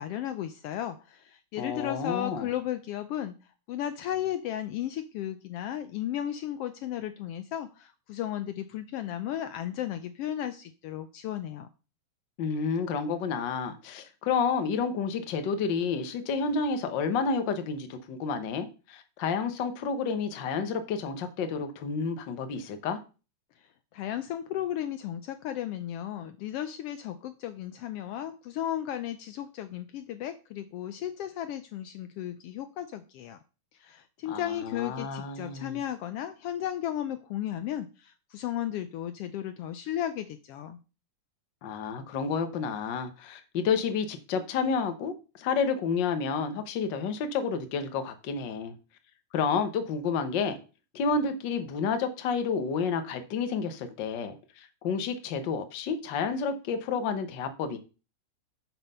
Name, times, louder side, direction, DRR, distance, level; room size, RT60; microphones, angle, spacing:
voice 1, 0.0-3.4 3.7-11.7 23.6-33.4 33.7-40.8, left 11 dB, 85° left, 1.3 m, -34 dB
voice 2, 1.6-2.5 12.4-23.0 34.3-35.8 41.6-48.7 49.3-50.6 50.9-57.8, left 5 dB, 60° left, 1.2 m, -30 dB
7.3 x 6.0 x 5.5 m
omnidirectional pair, 3.5 m